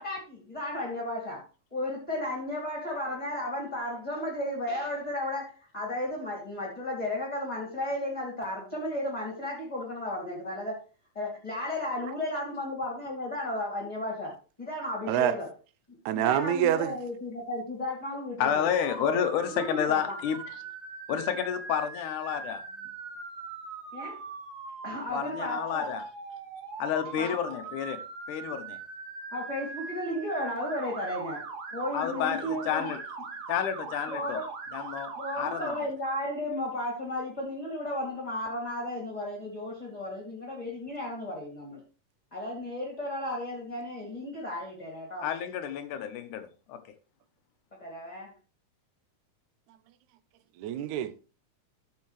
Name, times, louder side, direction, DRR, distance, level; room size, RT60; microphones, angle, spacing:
voice 1, 0.0-1.4 1.7-10.8 11.1-15.5 15.9-18.7 19.0-19.2 19.5-20.2 23.9-24.2 24.8-25.9 27.2-27.6 29.3-31.4 31.7-32.9 34.1-34.5 35.2-41.8 42.3-45.3 47.7-48.3, left 1 dB, 15° left, 2.2 m, -34 dB
voice 2, 16.1-17.0 50.6-51.1, right 11 dB, 75° right, 1.9 m, -26 dB
voice 3, 18.4-20.4 21.1-22.6 25.1-26.0 26.8-28.0 28.3-28.8 31.9-33.0 33.5-34.4 34.7-35.8 45.2-46.8, left 9 dB, 75° left, 2.4 m, -30 dB
Motor vehicle (road) / Siren, 18.5-35.8, right 4 dB, 60° right, 1.0 m, -41 dB
13.0 x 7.0 x 3.2 m
omnidirectional pair, 3.7 m